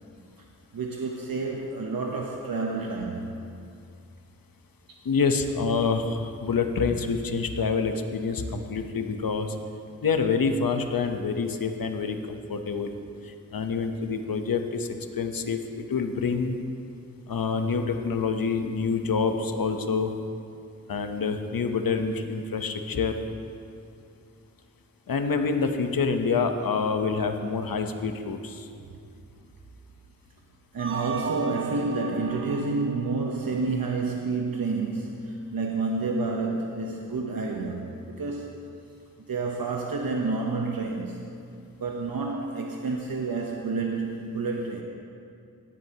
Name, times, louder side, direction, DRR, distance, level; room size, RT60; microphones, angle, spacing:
voice 1, 0.7-3.3 4.9-5.0 30.7-38.6 39.2-41.2 41.8-44.8, right 3 dB, 85° right, 0 dB, 0.9 m, -29 dB
voice 2, 5.0-9.5 10.0-12.9 13.2-14.9 15.1-16.6 17.3-20.1 20.9-23.2 25.1-28.7, left 5 dB, 80° left, 6 dB, 0.9 m, -27 dB
sound 1, 30.8-33.9, right 5 dB, 35° right, 0.8 m, -36 dB
18.0 x 11.0 x 2.9 m, 2.5 s
wide cardioid pair, 65°, 34 cm